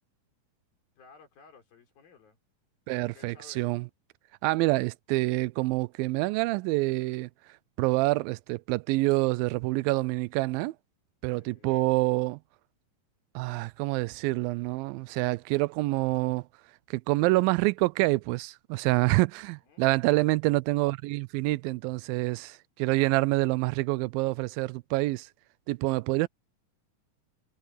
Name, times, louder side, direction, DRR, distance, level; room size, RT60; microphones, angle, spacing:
voice 1, 1.0-2.4 3.0-3.7 11.2-11.9 19.6-19.9, left 5 dB, 90° left, 6.6 m, -56 dB
voice 2, 2.9-3.9 4.4-7.3 7.8-10.7 11.2-12.4 13.4-16.5 16.9-25.3 25.7-26.3, right 21 dB, 85° right, 2.3 m, -27 dB
omnidirectional pair, 4.1 m